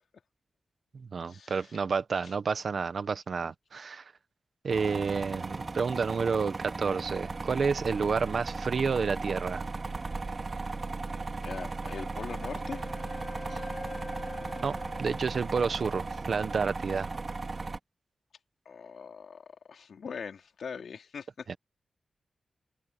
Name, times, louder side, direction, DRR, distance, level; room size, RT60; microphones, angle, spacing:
voice 1, 0.9-4.0 4.6-9.6 13.5-13.6 14.6-17.1 21.5-21.6, right 5 dB, 60° right, 1.1 m, -30 dB
sound 1, 4.7-17.8, right 3 dB, 35° right, 2.8 m, -36 dB
voice 2, 11.4-12.8 18.7-21.5, left 6 dB, 85° left, 3.6 m, -41 dB
Wind instrument woodwind instrument, 12.0-16.2, left 3 dB, 40° left, 2.1 m, -45 dB
wide cardioid pair, 150°, 0 cm